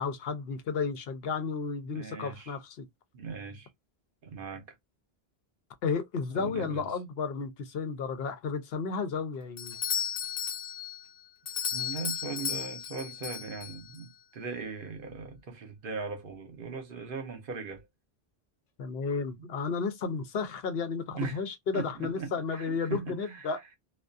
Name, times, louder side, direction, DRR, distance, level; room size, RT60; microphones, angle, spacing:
voice 1, 0.0-2.9 5.8-9.8 18.8-23.6, left 5 dB, 75° left, 0.9 m, -33 dB
voice 2, 1.9-2.5 3.1-3.7 4.2-4.8 6.3-6.9 11.7-17.9 21.1-21.4 21.7-23.5, right 5 dB, 60° right, 0.9 m, -39 dB
Doorbell, 9.6-14.0, left 8 dB, 50° left, 0.6 m, -35 dB
2.3 x 2.3 x 2.5 m
omnidirectional pair, 1.0 m